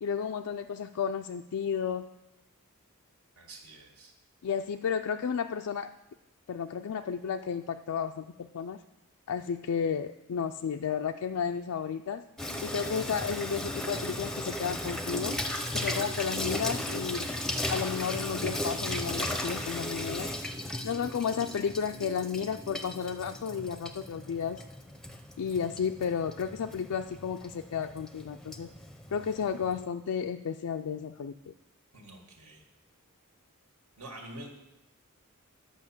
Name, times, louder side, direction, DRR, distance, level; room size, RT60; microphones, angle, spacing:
voice 1, 0.0-2.1 4.4-5.9 6.5-8.8 9.3-12.2 12.6-15.4 15.7-17.3 17.7-20.3 20.8-24.6 25.4-28.7 29.1-31.5, left 7 dB, 75° left, 5 dB, 0.4 m, -32 dB
voice 2, 3.4-4.1 31.9-32.6 34.0-34.5, right 1 dB, 75° right, 1 dB, 2.1 m, -46 dB
Water tap faucet / Sink (filling or washing), 12.4-29.9, left 1 dB, ahead, 0.6 m, -36 dB
11.0 x 5.7 x 7.2 m, 0.96 s
head